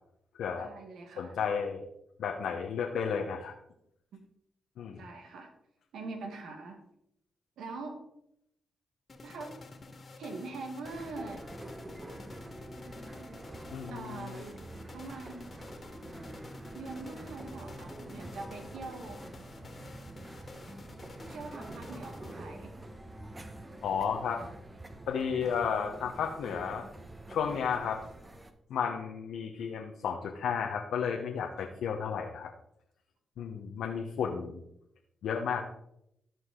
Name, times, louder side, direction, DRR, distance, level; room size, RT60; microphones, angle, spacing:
voice 1, 0.6-1.4 4.1-4.2 5.0-5.5 5.9-6.8 7.6-8.0 9.2-9.5 10.2-11.4 13.9-14.6 14.9-15.6 16.7-19.2 21.3-22.7, right 3 dB, 80° right, 5 dB, 1.5 m, -43 dB
voice 2, 1.2-1.8 2.2-3.5 4.8-5.0 13.7-14.4 23.8-24.4 25.1-26.8 27.3-28.0 28.7-32.5 33.4-34.6 35.2-35.6, left 7 dB, 80° left, 2 dB, 0.9 m, -33 dB
sound 1, 9.1-22.7, left 3 dB, 45° left, 1.8 m, -50 dB
sound 2, 10.8-28.5, right 1 dB, 25° right, 1.1 m, -46 dB
14.0 x 4.6 x 3.8 m, 0.78 s
supercardioid pair, 50°, 0 cm